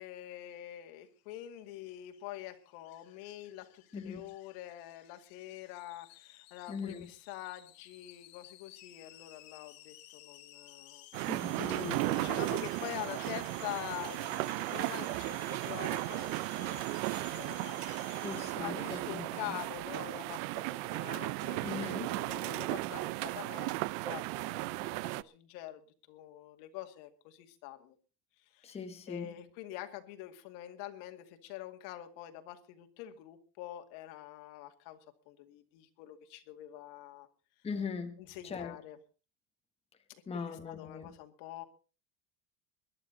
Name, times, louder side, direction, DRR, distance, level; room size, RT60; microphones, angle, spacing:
voice 1, 0.0-11.1 11.8-16.8 17.1-17.8 18.1-18.3 18.5-27.9 28.5-28.8 29.1-35.0 35.3-37.3 38.2-39.0 40.1-41.6, left 13 dB, 75° left, 2.3 m, -46 dB
sound 1, 1.2-18.5, left 15 dB, 45° left, 1.5 m, -55 dB
voice 2, 3.9-4.2 6.7-7.1 11.3-12.3 18.2-19.6 21.6-22.1 28.6-29.3 37.6-38.2 38.4-38.8 40.3-41.1, left 5 dB, 15° left, 1.1 m, -40 dB
sound 2, 11.1-25.2, right 21 dB, 75° right, 0.7 m, -35 dB
21.5 x 11.0 x 4.0 m
cardioid pair, 165°, 47 cm